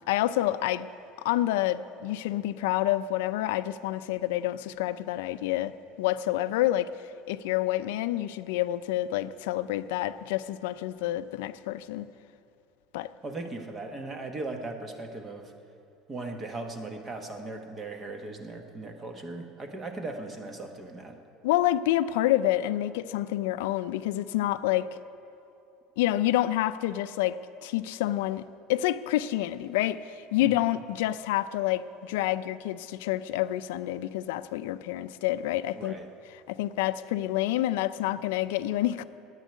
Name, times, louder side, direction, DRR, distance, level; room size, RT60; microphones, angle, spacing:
voice 1, 0.1-0.9 1.2-5.7 6.0-12.1 12.9-13.1 21.4-24.9 26.0-28.4 28.7-35.9 36.5-39.0, left 14 dB, 90° left, 0.4 m, -28 dB
voice 2, 13.2-15.5 16.1-21.2 30.4-30.6 35.7-36.1, right 2 dB, 20° right, 1.1 m, -38 dB
10.0 x 9.1 x 9.4 m
cardioid pair, 155°, 0 cm